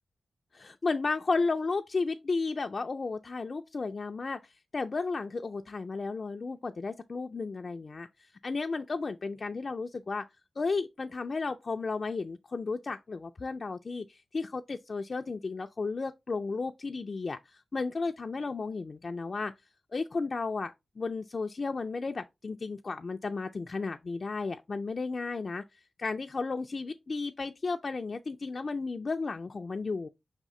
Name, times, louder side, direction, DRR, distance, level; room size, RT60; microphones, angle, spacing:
voice 1, 0.5-8.1 8.4-10.3 10.6-19.5 19.9-25.6 26.0-30.1, left 4 dB, 50° left, 0.3 m, -33 dB
4.7 x 3.6 x 3.1 m
cardioid pair, 55°, 0 cm